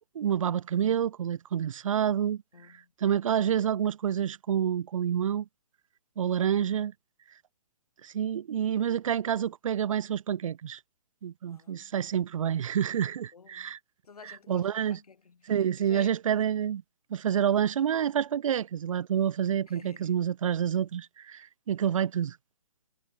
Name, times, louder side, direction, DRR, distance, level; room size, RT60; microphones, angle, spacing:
voice 1, 0.1-2.4 3.0-5.5 6.2-6.9 8.0-10.8 11.2-13.8 14.5-15.0 15.5-16.8 17.1-22.4, right 9 dB, 60° right, 0.5 m, -28 dB
voice 2, 2.5-2.9 11.5-11.9 13.3-13.8 14.0-16.2 19.7-20.2, left 5 dB, 70° left, 2.9 m, -53 dB
figure-of-eight pair, 135°, 20 cm